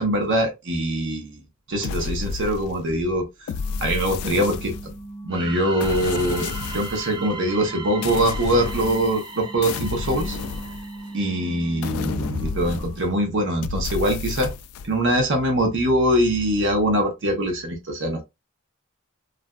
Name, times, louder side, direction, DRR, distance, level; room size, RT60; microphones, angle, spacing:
voice 1, 0.0-1.4 1.7-3.5 3.8-4.9 5.2-10.4 11.1-14.5 14.8-18.2, right 1 dB, 55° right, 0.8 m, -23 dB
sound 1, 1.8-2.9 3.5-5.1 5.8-7.1 8.0-9.3 9.6-11.2 11.8-13.2 13.6-14.9, left 5 dB, 75° left, 0.3 m, -31 dB
sound 2, 3.5-13.2, right 2 dB, 20° left, 0.9 m, -41 dB
sound 3, 5.3-11.9, right 4 dB, 20° right, 0.4 m, -37 dB
3.2 x 2.4 x 2.3 m
head